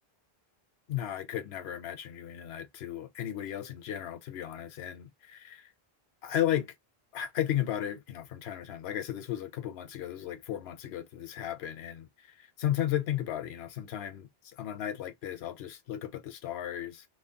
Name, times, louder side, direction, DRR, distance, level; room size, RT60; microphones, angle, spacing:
voice 1, 0.9-5.7 6.2-6.7 7.1-17.1, left 11 dB, 90° left, 0.9 m, -35 dB
3.0 x 2.1 x 2.6 m
omnidirectional pair, 1.0 m